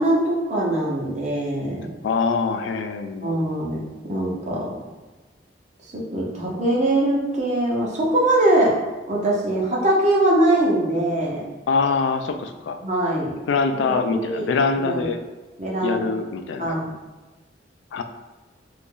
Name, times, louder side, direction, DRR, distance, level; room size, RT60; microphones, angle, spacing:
voice 1, 0.0-1.9 3.2-4.7 5.9-8.8 9.1-11.4 12.8-13.3 13.7-14.5 14.8-15.0 15.6-16.1 16.6-16.9, right 1 dB, 40° right, -3 dB, 0.8 m, -22 dB
voice 2, 2.0-3.3 11.7-12.8 13.5-15.2 15.8-16.8 17.9-18.0, left 4 dB, 75° left, 7 dB, 0.3 m, -24 dB
2.9 x 2.5 x 3.7 m, 1.2 s
head